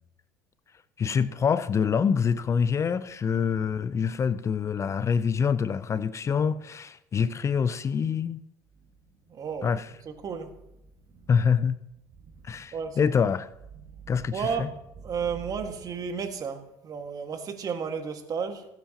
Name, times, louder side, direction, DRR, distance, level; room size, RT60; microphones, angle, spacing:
voice 1, 1.0-8.4 9.6-9.9 11.3-11.8 12.4-13.5 14.1-14.7, left 6 dB, 35° left, 15 dB, 0.6 m, -26 dB
voice 2, 9.3-9.7 10.1-10.5 12.7-13.1 14.3-18.7, right 6 dB, 45° right, 6 dB, 1.8 m, -33 dB
20.5 x 9.1 x 3.0 m, 0.85 s
hypercardioid pair, 70°, 9 cm